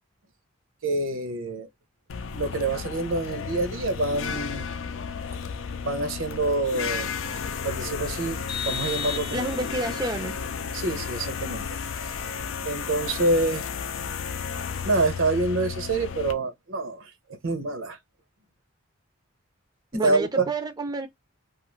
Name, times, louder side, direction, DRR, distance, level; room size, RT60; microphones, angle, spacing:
voice 1, 0.8-1.7 2.3-4.7 5.8-7.1 7.6-9.5 9.8-9.9 10.7-11.7 12.6-13.6 14.8-18.0 20.0-20.5, right 2 dB, 75° right, 0.7 m, -26 dB
sound 1, 2.1-16.3, left 6 dB, 75° left, 0.4 m, -33 dB
Vehicle horn car horn honking, 8.5-9.9, left 7 dB, 20° left, 0.6 m, -34 dB
voice 2, 9.3-10.3 19.9-21.1, right 2 dB, 20° right, 0.4 m, -29 dB
2.4 x 2.3 x 3.0 m
head